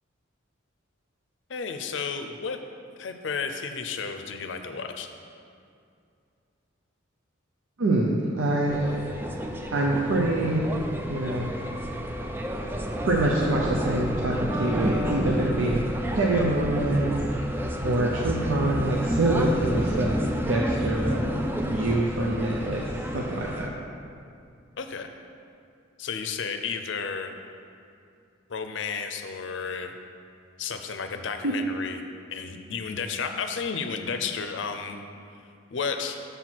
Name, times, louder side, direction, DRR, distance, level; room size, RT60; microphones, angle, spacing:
voice 1, 1.5-2.6 3.0-5.1 17.3-17.6 24.8-25.1 26.0-27.3 28.5-29.9 30.6-32.0 32.3-35.0 35.7-36.2, left 5 dB, 65° left, 6 dB, 0.5 m, -32 dB
voice 2, 7.8-9.1 9.7-10.7 11.1-11.5 13.1-15.8 16.1-17.1 17.5-17.6 17.8-20.2 20.5-21.2 21.7-22.8 23.1-23.7 31.4-31.5, right 1 dB, 85° right, -2 dB, 0.6 m, -25 dB
sound 1, 8.7-23.7, equal, 10° right, 0.3 m, -30 dB
6.8 x 5.9 x 4.5 m, 2.4 s
head